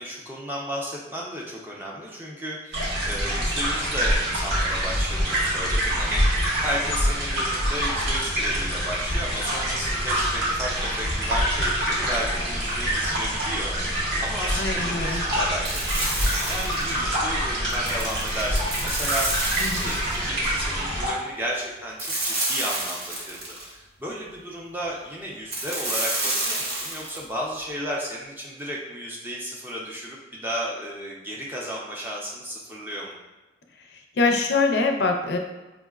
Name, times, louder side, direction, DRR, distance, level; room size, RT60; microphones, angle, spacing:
voice 1, 0.0-19.4 19.7-33.2, equal, 10° right, -3 dB, 0.4 m, -33 dB
sound 1, 2.7-21.1, equal, 80° right, 1.1 m, -26 dB
voice 2, 14.5-15.2 19.6-19.9 34.2-35.4, left 3 dB, 75° left, 3 dB, 0.4 m, -23 dB
sound 2, 15.6-17.0 17.7-20.2 22.0-23.7 25.5-27.2, right 2 dB, 55° right, 0.7 m, -29 dB
4.9 x 2.0 x 2.3 m, 1.1 s
head